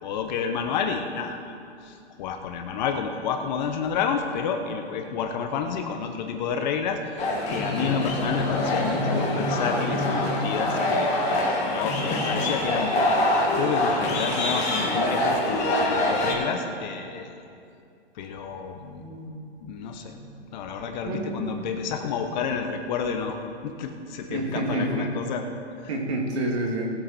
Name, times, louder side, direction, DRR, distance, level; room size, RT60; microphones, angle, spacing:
voice 1, 0.0-1.5 1.8-7.0 7.5-12.9 13.6-17.4 18.1-19.1 19.6-20.1 20.5-23.4 23.6-25.4, left 6 dB, 40° left, 5 dB, 1.3 m, -30 dB
sound 1, 7.2-16.3, left 1 dB, 20° left, 2.3 m, -25 dB
voice 2, 7.8-8.1 19.0-19.5 19.8-20.2 21.0-21.8 24.3-25.1 25.9-26.9, right 1 dB, 70° right, -1 dB, 3.2 m, -29 dB
20.0 x 8.0 x 4.3 m, 2.5 s
hypercardioid pair, 145°, 33 cm